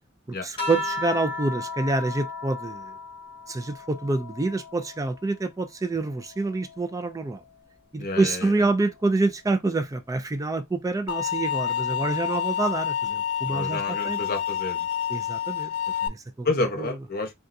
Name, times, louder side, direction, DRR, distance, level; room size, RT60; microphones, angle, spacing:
voice 1, 0.3-2.9 3.5-7.4 7.9-14.2 15.1-15.7 16.0-16.5 16.8-17.0, right 3 dB, 15° right, 0.3 m, -27 dB
sound 1, 0.6-5.4 5.8-7.6 8.8-9.3, left 2 dB, 25° left, 1.3 m, -36 dB
voice 2, 8.0-8.5 13.4-14.9 16.4-17.3, left 2 dB, 45° left, 1.0 m, -30 dB
sound 2, 11.1-16.1, left 9 dB, 80° left, 0.4 m, -28 dB
3.8 x 2.3 x 2.6 m
head